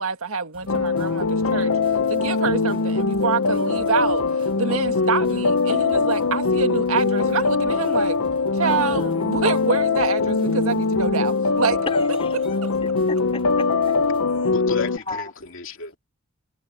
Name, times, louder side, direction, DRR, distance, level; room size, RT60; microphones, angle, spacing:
voice 1, 0.0-1.7 2.1-4.3 4.6-8.2 8.5-11.8 12.3-12.7, right 5 dB, 75° right, 1.7 m, -26 dB
sound 1, 0.5-14.2, right 1 dB, 25° right, 4.9 m, -50 dB
sound 2, 0.7-15.0, left 4 dB, 75° left, 0.8 m, -22 dB
voice 2, 3.5-3.8 8.6-9.3 11.8-13.9 15.1-15.2, left 2 dB, 25° left, 3.4 m, -34 dB
voice 3, 14.5-16.0, left 4 dB, 60° left, 2.7 m, -33 dB
head